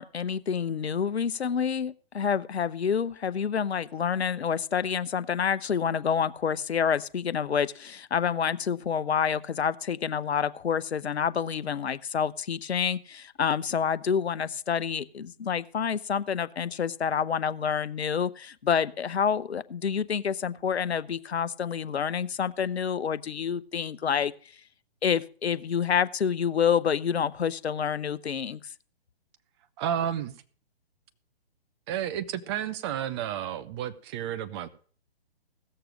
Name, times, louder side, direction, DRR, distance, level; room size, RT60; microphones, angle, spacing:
voice 1, 0.0-24.3 25.0-28.6, left 7 dB, 85° left, 15 dB, 0.8 m, -28 dB
voice 2, 29.8-30.3 31.9-34.7, right 10 dB, 25° right, 10 dB, 0.8 m, -31 dB
16.5 x 6.8 x 6.2 m, 0.43 s
hypercardioid pair, 140°, 31 cm